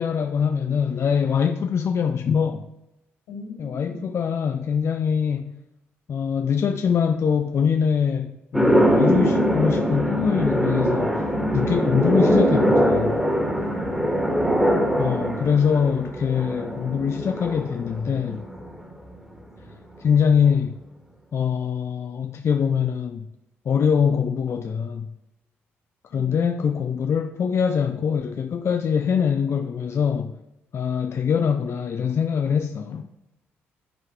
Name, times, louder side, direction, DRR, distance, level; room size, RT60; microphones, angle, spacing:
voice 1, 0.0-2.7 3.6-5.5 6.1-11.3 11.5-13.2 15.0-18.4 20.0-20.7 21.3-23.3 23.7-25.1 26.1-30.4 30.7-33.1, left 7 dB, 45° left, 0.4 m, -23 dB
voice 2, 3.3-4.0 13.6-14.2 26.1-26.5, left 1 dB, 75° left, 2.8 m, -41 dB
sound 1, 8.5-18.9, equal, 5° right, 1.6 m, -22 dB
9.2 x 4.5 x 3.6 m
hypercardioid pair, 45°, 7 cm